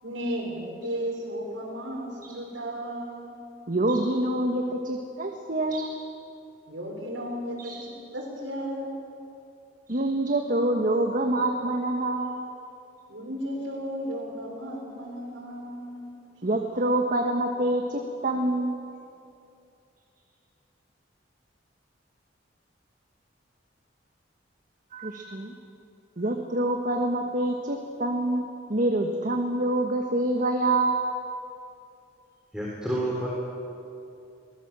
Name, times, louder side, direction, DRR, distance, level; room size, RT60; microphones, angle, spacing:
voice 1, 0.0-3.3 6.7-8.9 13.1-16.1, equal, 80° right, -1 dB, 5.7 m, -34 dB
voice 2, 3.7-5.9 7.6-7.8 9.9-12.4 16.4-18.8 24.9-25.5 26.2-28.4 28.7-31.0, right 1 dB, 45° right, 3 dB, 1.4 m, -26 dB
voice 3, 32.5-33.3, right 1 dB, 5° right, -5 dB, 3.9 m, -29 dB
23.5 x 18.5 x 7.6 m, 2.6 s
head